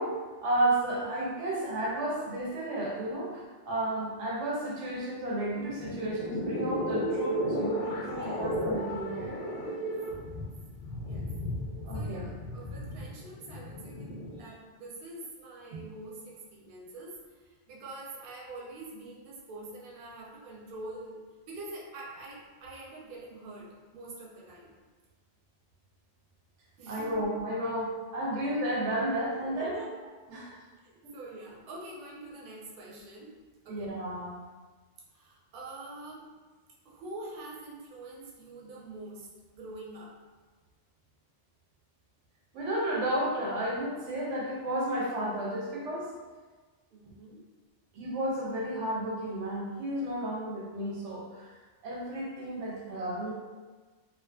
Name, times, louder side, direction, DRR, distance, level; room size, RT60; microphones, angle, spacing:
voice 1, 0.0-9.3 11.8-12.3 14.4-14.5 15.7-15.8 26.9-29.8 30.3-30.6 31.0-31.1 33.7-34.5 42.5-46.1 47.9-53.3, right 1 dB, 85° right, -3 dB, 0.9 m, -32 dB
sound 1, 5.7-14.4, equal, 60° left, 0.6 m, -34 dB
voice 2, 8.0-8.5 9.5-9.9 10.2-10.3 11.0-11.3 11.9-24.7 26.8-27.2 28.3-28.5 29.5-30.4 30.8-33.3 33.6-33.9 35.1-36.3 36.8-39.3 39.5-40.2 46.9-47.4, right 2 dB, 60° right, -4 dB, 0.7 m, -45 dB
2.5 x 2.4 x 2.3 m, 1.3 s
omnidirectional pair, 1.2 m